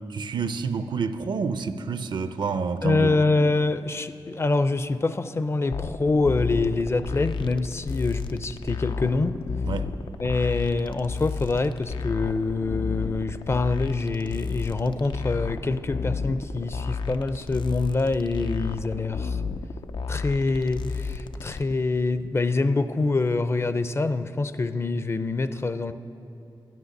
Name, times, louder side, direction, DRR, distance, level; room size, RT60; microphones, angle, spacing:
voice 1, 0.1-3.2 9.6-9.9, right 5 dB, 70° right, 0.5 m, -28 dB
voice 2, 2.8-9.4 10.2-19.4 20.1-25.9, left 3 dB, 30° left, 0.4 m, -25 dB
sound 1, 5.7-21.6, left 4 dB, 90° left, 0.5 m, -32 dB
12.5 x 9.7 x 6.5 m
wide cardioid pair, 90°, 8 cm